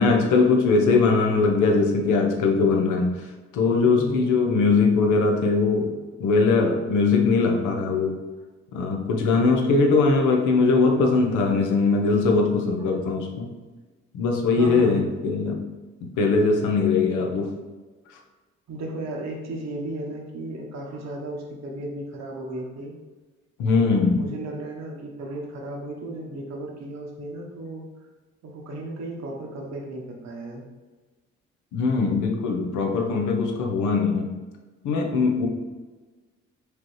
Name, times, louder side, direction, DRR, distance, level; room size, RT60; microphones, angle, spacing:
voice 1, 0.0-3.3 3.5-5.9 6.2-8.2 8.7-13.5 14.1-15.6 16.0-17.5 23.6-24.2 31.7-34.3 34.8-35.5, left 4 dB, 80° left, 2 dB, 0.8 m, -21 dB
voice 2, 3.8-4.4 14.6-15.0 18.7-22.9 23.7-27.9 28.4-30.6, right 1 dB, 65° right, 0 dB, 1.1 m, -35 dB
5.0 x 3.0 x 3.1 m, 1.3 s
supercardioid pair, 60°, 30 cm